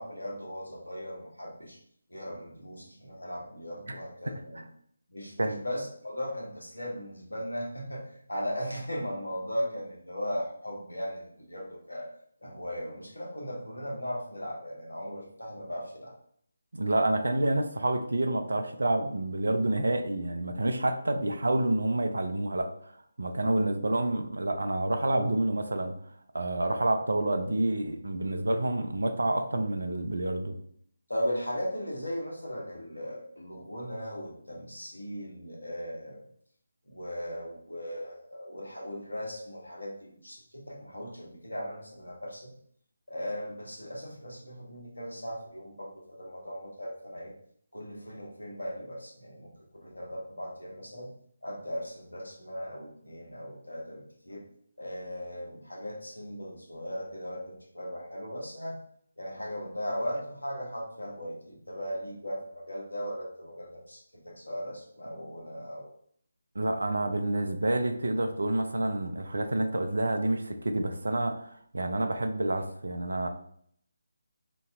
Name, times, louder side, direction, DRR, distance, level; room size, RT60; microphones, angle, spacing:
voice 1, 0.0-1.8 2.1-4.6 5.1-12.1 12.4-16.1 31.1-36.2 36.9-42.5 43.1-47.3 47.7-49.5 49.8-51.1 51.4-54.5 54.8-58.8 59.2-65.9, equal, 80° left, -1 dB, 1.2 m, -37 dB
voice 2, 16.7-22.9 23.2-25.9 26.3-30.5 66.5-73.3, right 1 dB, 65° right, 7 dB, 0.5 m, -28 dB
3.0 x 2.8 x 3.5 m, 0.64 s
figure-of-eight pair, 150°, 0 cm